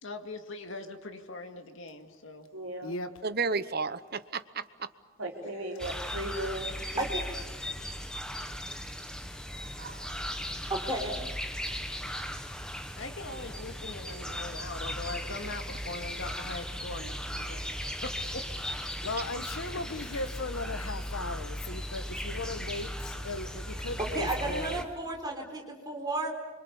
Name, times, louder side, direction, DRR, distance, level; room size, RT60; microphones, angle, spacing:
voice 1, 0.0-2.5 5.7-5.8 13.0-18.4 18.9-19.1, left 2 dB, 65° left, 5 dB, 2.3 m, -41 dB
voice 2, 2.5-3.0 5.2-7.0 7.8-7.9, right 1 dB, 80° right, 1 dB, 3.9 m, -37 dB
voice 3, 3.2-4.9 9.8-10.1, right 4 dB, 45° right, 13 dB, 0.9 m, -33 dB
sound 1, 5.8-24.8, equal, 5° left, 1.4 m, -37 dB
voice 4, 10.7-11.1 24.0-26.3, right 2 dB, 20° right, 2 dB, 4.2 m, -32 dB
voice 5, 19.0-24.8, left 2 dB, 85° left, 10 dB, 1.5 m, -37 dB
28.0 x 25.5 x 7.1 m, 1.2 s
head